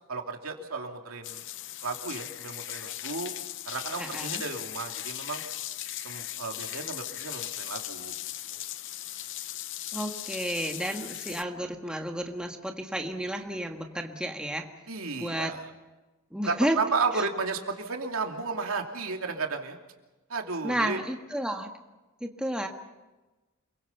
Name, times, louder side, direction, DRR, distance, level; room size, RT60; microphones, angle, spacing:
voice 1, 0.1-1.4 1.8-3.3 3.6-5.4 6.0-8.1 8.5-8.6 14.9-15.6 16.4-19.8 20.3-21.0, right 4 dB, 75° right, 3 dB, 2.8 m, -33 dB
sound 1, 1.2-11.4, left 13 dB, 60° left, 0.8 m, -38 dB
voice 2, 4.0-4.4 9.9-14.7 15.2-15.5 16.3-16.8 20.6-21.7 22.2-22.7, right 1 dB, 5° right, 3 dB, 1.6 m, -31 dB
28.5 x 23.5 x 5.7 m, 1.1 s
head